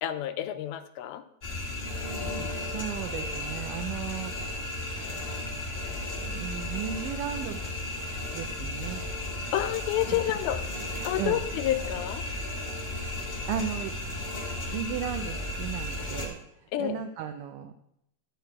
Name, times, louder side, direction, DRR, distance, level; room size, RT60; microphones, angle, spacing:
voice 1, 0.0-1.2 9.5-10.6 11.0-12.3 16.7-17.0, left 13 dB, 85° left, 10 dB, 2.4 m, -29 dB
sound 1, 1.4-16.3, left 2 dB, 30° left, 1.8 m, -34 dB
voice 2, 2.3-4.3 5.8-7.6 8.3-9.0 11.2-11.4 13.5-17.7, right 9 dB, 85° right, 7 dB, 1.9 m, -36 dB
11.5 x 4.6 x 8.2 m, 0.75 s
omnidirectional pair, 4.4 m